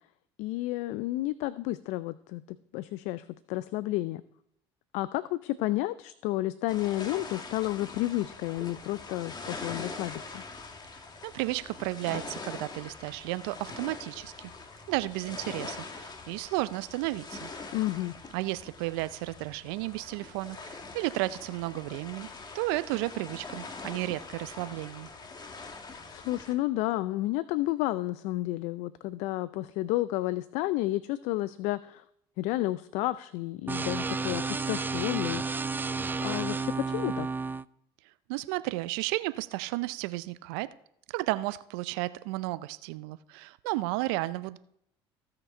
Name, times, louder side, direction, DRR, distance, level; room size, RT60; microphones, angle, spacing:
voice 1, 0.4-2.4 2.7-4.2 4.9-10.4 17.7-18.2 26.1-32.0 32.4-35.4 36.2-37.3, left 17 dB, 70° left, 16 dB, 0.4 m, -31 dB
sound 1, 6.7-26.5, left 3 dB, 35° left, 1.8 m, -43 dB
voice 2, 11.2-14.3 14.9-17.5 18.3-22.3 22.5-25.1 38.3-40.7 41.1-44.6, right 19 dB, 75° right, 15 dB, 0.4 m, -33 dB
sound 2, 33.7-37.6, right 4 dB, 15° right, 0.4 m, -31 dB
15.5 x 5.8 x 4.4 m, 0.75 s
hypercardioid pair, 65°, 13 cm